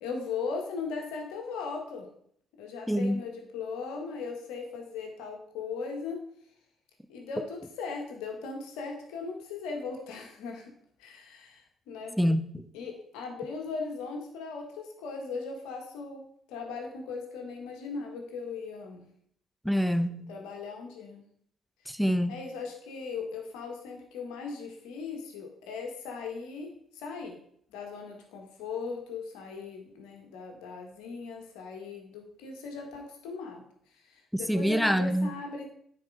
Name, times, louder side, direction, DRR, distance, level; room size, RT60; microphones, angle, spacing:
voice 1, 0.0-2.1 2.6-6.2 7.1-10.7 11.0-12.2 12.7-16.2 16.5-19.0 20.3-21.3 22.3-27.4 27.7-33.6 34.1-35.7, left 4 dB, 80° left, 1.6 m, -38 dB
voice 2, 2.9-3.2 12.2-12.7 19.6-20.3 21.9-22.3 34.3-35.3, equal, ahead, 0.8 m, -26 dB
9.6 x 4.6 x 4.9 m
hypercardioid pair, 50°, 0 cm